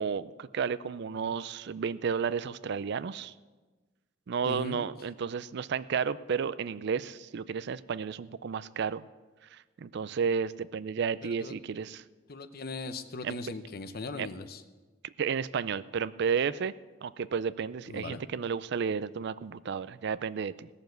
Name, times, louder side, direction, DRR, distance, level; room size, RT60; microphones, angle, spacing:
voice 1, 0.0-3.3 4.3-9.1 9.5-12.0 13.2-13.3 14.2-14.3 15.2-16.7 17.0-20.7, right 6 dB, 55° right, 17 dB, 0.4 m, -32 dB
voice 2, 4.4-4.8 11.2-11.5 12.3-14.6 17.9-18.2, left 3 dB, 50° left, 10 dB, 0.8 m, -39 dB
17.0 x 7.0 x 7.9 m, 1.3 s
head